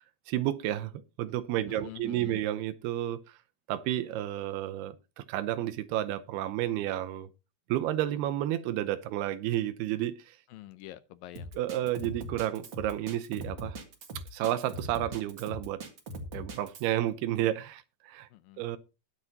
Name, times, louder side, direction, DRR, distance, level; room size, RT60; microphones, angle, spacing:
voice 1, 0.3-0.9 1.2-3.4 3.7-7.3 7.7-10.4 11.6-13.8 14.3-15.8 16.3-18.3 18.6-18.8, right 13 dB, 85° right, 2.8 m, -31 dB
voice 2, 1.7-2.4 10.5-11.5 18.3-18.6, left 14 dB, 80° left, 2.2 m, -46 dB
Drum kit, 11.3-16.9, right 1 dB, 40° right, 1.9 m, -41 dB
20.5 x 7.6 x 2.8 m
omnidirectional pair, 4.5 m